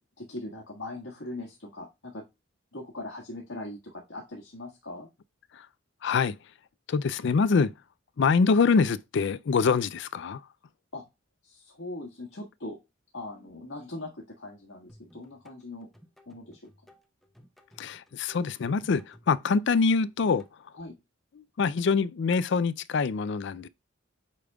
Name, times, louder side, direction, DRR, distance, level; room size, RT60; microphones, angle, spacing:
voice 1, 0.0-2.2 2.7-5.1 10.9-11.0 11.4-12.8 13.1-15.9 16.2-16.7 20.7-21.0, left 2 dB, 85° left, 1.6 m, -40 dB
voice 2, 6.0-6.5 6.9-7.7 8.2-10.5 17.8-20.8 21.4-23.7, left 5 dB, 65° left, 0.4 m, -25 dB
sound 1, 14.9-20.5, equal, ahead, 0.9 m, -58 dB
8.2 x 5.2 x 2.3 m
head